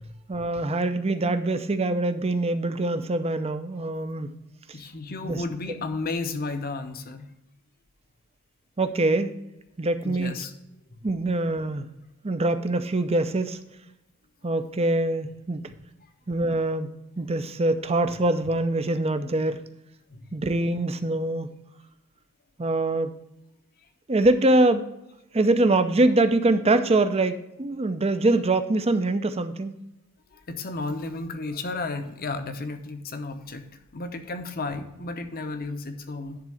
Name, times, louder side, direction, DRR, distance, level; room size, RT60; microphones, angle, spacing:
voice 1, 0.3-4.3 5.2-5.4 8.8-9.3 9.8-10.3 11.0-11.9 12.2-13.6 14.4-15.6 16.3-19.6 20.3-21.5 22.6-23.2 24.1-24.9 25.3-29.7, right 2 dB, 25° right, 10 dB, 0.6 m, -24 dB
voice 2, 4.7-7.3 10.0-10.5 20.1-20.2 30.3-33.7 33.9-36.4, left 3 dB, 40° left, 8 dB, 0.8 m, -33 dB
10.5 x 3.7 x 6.2 m, 0.88 s
head